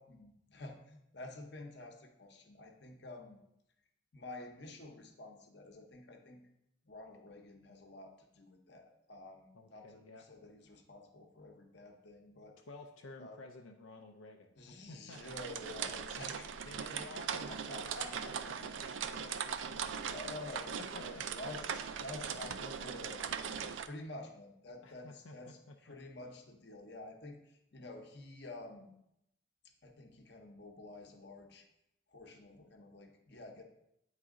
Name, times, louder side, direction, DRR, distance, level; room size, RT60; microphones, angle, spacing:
voice 1, 0.0-3.4 4.1-6.4 6.8-12.6 13.2-13.4 14.6-16.5 16.9-18.8 20.0-28.9 29.8-31.6 32.1-33.6, left 2 dB, 55° left, 4 dB, 0.9 m, -50 dB
voice 2, 9.5-10.2 12.7-14.5 14.9-15.2 16.6-20.3 20.8-21.5 24.8-25.9, left 2 dB, 85° left, 3 dB, 0.5 m, -53 dB
sound 1, 15.1-23.9, right 7 dB, 70° right, 0.4 m, -40 dB
8.8 x 4.0 x 3.7 m, 0.80 s
head